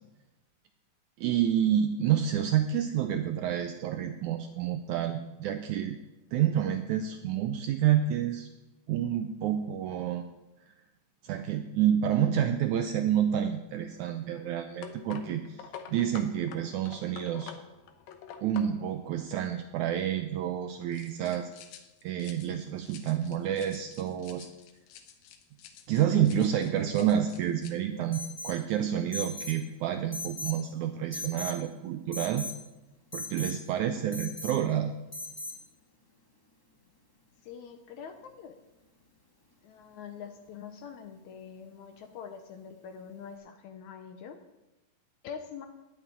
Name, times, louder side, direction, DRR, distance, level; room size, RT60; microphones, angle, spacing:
voice 1, 1.2-6.0 6.3-8.5 8.9-10.3 10.7-10.8 11.2-17.5 18.4-21.5 22.0-24.5 25.9-32.4 33.1-34.9, right 10 dB, 85° right, 7 dB, 1.7 m, -29 dB
sound 1, 13.8-20.0 20.9-27.7, left 8 dB, 90° left, 2.8 m, -49 dB
Alarm, 28.1-28.6 29.1-29.6 30.1-30.6 31.1-31.6 32.1-32.6 33.1-33.6 34.1-34.6 35.1-35.6, left 2 dB, 10° left, 1.3 m, -38 dB
voice 2, 37.4-38.6 39.6-44.4 45.2-45.7, left 7 dB, 70° left, 7 dB, 1.9 m, -44 dB
10.0 x 7.4 x 9.5 m, 1.0 s
omnidirectional pair, 4.1 m